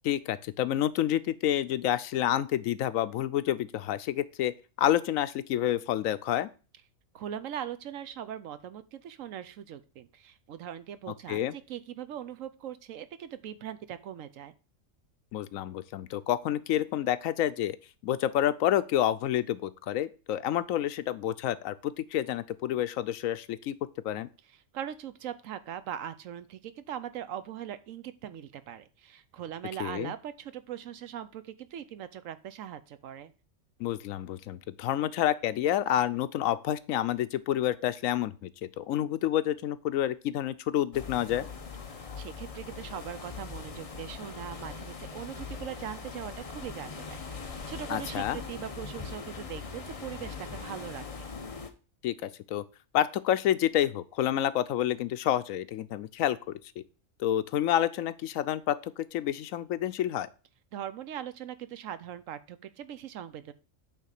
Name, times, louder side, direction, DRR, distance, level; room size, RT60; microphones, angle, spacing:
voice 1, 0.0-6.5 11.3-11.5 15.3-17.8 18.0-23.8 24.0-24.3 29.8-30.1 33.8-38.5 38.8-41.5 47.9-48.4 52.0-52.6 52.9-56.4 56.8-56.9 57.2-60.3, left 11 dB, 80° left, 14 dB, 1.0 m, -29 dB
voice 2, 7.1-14.5 24.7-33.3 41.9-47.2 47.7-51.2 60.7-63.5, right 10 dB, 80° right, 13 dB, 1.1 m, -40 dB
sound 1, 40.9-51.7, left 5 dB, 30° left, 0.8 m, -41 dB
8.1 x 3.6 x 6.5 m, 0.35 s
omnidirectional pair, 1.4 m